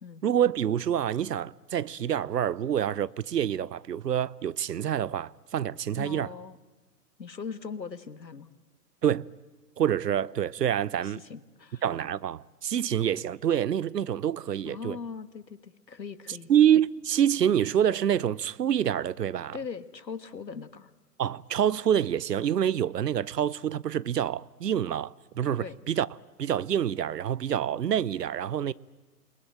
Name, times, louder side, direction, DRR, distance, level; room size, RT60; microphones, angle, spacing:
voice 1, 0.2-6.3 9.0-9.3 9.8-11.2 11.8-15.0 16.3-19.6 21.2-26.1 26.4-28.7, right 9 dB, 75° right, 0.8 m, -27 dB
voice 2, 5.9-6.6 7.2-8.5 11.0-11.8 14.6-16.5 19.5-20.9 25.6-25.8, left 5 dB, 85° left, 1.5 m, -40 dB
29.0 x 20.5 x 8.9 m
figure-of-eight pair, 125°, 49 cm